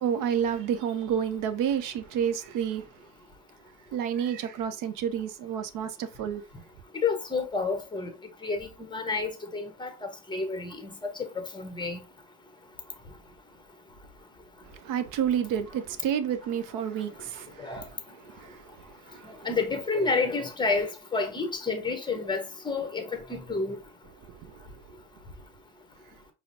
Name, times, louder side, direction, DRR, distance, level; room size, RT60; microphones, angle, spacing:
voice 1, 0.0-2.9 3.9-6.4 14.6-19.5 24.3-24.8, right 8 dB, 50° right, 0.5 m, -30 dB
voice 2, 7.0-8.1 8.4-9.9 10.3-10.9 11.4-12.0 17.6-17.8 19.4-23.8, left 4 dB, 10° left, 0.7 m, -29 dB
4.9 x 2.0 x 2.6 m
supercardioid pair, 90°, 43 cm